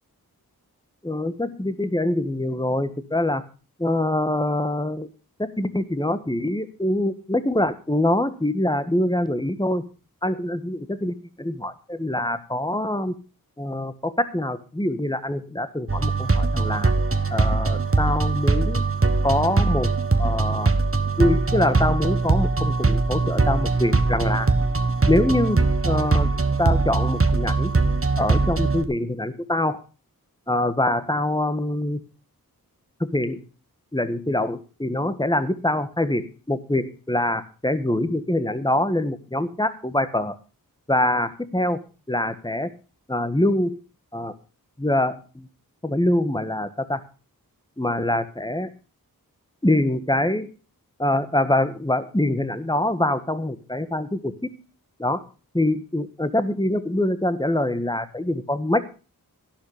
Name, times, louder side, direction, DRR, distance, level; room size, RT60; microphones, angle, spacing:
voice 1, 1.0-3.4 3.8-5.1 5.4-9.8 10.2-11.1 11.4-13.1 13.6-16.9 17.3-18.8 19.2-19.9 20.2-20.7 21.2-24.5 25.1-26.3 26.6-27.7 28.2-29.8 30.5-32.0 33.0-33.4 33.9-40.3 40.9-41.8 42.1-42.7 43.1-43.8 44.1-44.3 44.8-45.5 45.8-47.0 47.8-48.7 49.6-50.5 51.0-54.5 55.0-55.2 55.5-59.0, left 1 dB, 10° left, 11 dB, 1.6 m, -24 dB
sound 1, 15.9-28.8, right 3 dB, 35° right, 1.4 m, -21 dB
12.0 x 11.5 x 5.0 m, 0.35 s
wide cardioid pair, 40°, 36 cm